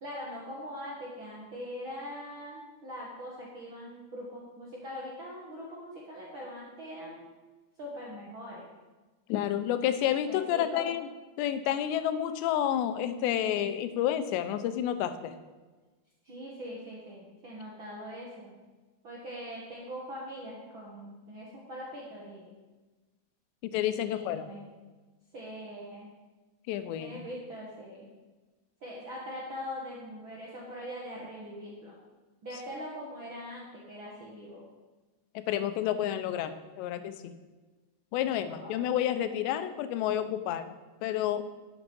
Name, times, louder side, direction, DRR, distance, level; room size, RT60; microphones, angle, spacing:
voice 1, 0.0-7.3 7.8-8.7 10.3-11.0 16.2-18.6 19.0-22.5 24.0-24.7 25.3-26.1 26.9-28.1 28.8-31.9 32.4-34.6 38.3-38.9, equal, 85° right, -4 dB, 1.1 m, -42 dB
voice 2, 9.3-11.1 11.4-15.3 23.6-24.5 26.7-27.2 35.4-37.3 38.1-40.7 41.0-41.5, left 11 dB, 90° left, 10 dB, 2.9 m, -30 dB
12.0 x 7.1 x 5.4 m, 1.2 s
omnidirectional pair, 4.9 m